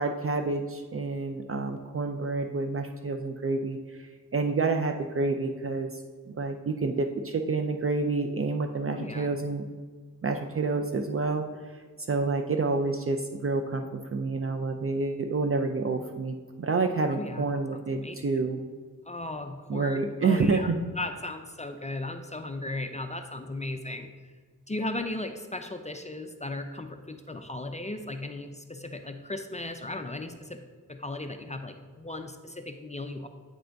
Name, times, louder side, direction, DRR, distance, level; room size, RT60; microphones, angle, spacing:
voice 1, 0.0-6.0 6.3-9.6 10.2-11.8 12.1-18.6 19.7-20.8, right 3 dB, 40° right, 5 dB, 0.4 m, -28 dB
voice 2, 8.9-9.3 17.1-18.2 19.0-20.7 21.0-24.1 24.7-30.6 30.9-33.3, left 2 dB, 20° left, 6 dB, 0.4 m, -36 dB
8.7 x 3.8 x 3.4 m, 1.5 s
wide cardioid pair, 85°, 33 cm